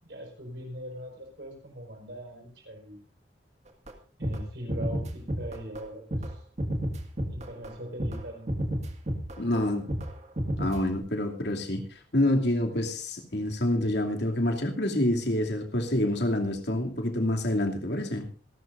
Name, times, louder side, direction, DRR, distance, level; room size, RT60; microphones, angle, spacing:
voice 1, 0.0-3.0 4.2-6.4 7.3-8.5, equal, 60° right, 2 dB, 5.1 m, -41 dB
sound 1, 3.9-4.0 4.2-4.4 4.7-5.8 6.1-6.3 6.6-7.7 8.0-8.2 8.5-9.6 9.9-10.1 10.4-11.0, equal, 40° right, 1.9 m, -31 dB
voice 2, 9.4-9.8 10.6-11.8 12.1-18.2, left 1 dB, 65° left, 3 dB, 2.7 m, -27 dB
26.5 x 12.5 x 2.6 m, 0.34 s
head